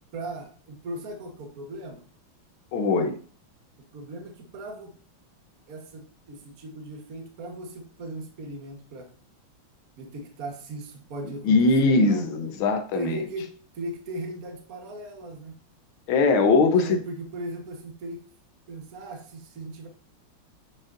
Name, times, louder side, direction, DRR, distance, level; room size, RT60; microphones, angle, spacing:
voice 1, 0.1-2.0 3.9-5.0 5.7-9.1 10.0-12.3 12.9-15.5 16.6-18.2 18.7-19.9, right 2 dB, 50° right, 1.6 m, -37 dB
voice 2, 2.7-3.2 11.4-13.2 16.1-17.0, left 3 dB, 85° left, 1.7 m, -21 dB
8.0 x 6.3 x 2.5 m
omnidirectional pair, 2.2 m